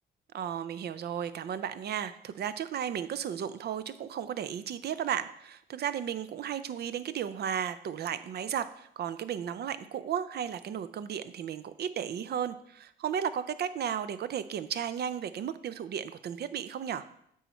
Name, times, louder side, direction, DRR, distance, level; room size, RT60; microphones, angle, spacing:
voice 1, 0.3-17.0, right 8 dB, 55° right, 13 dB, 0.5 m, -34 dB
8.3 x 4.4 x 4.1 m, 0.71 s
cardioid pair, 90°, 20 cm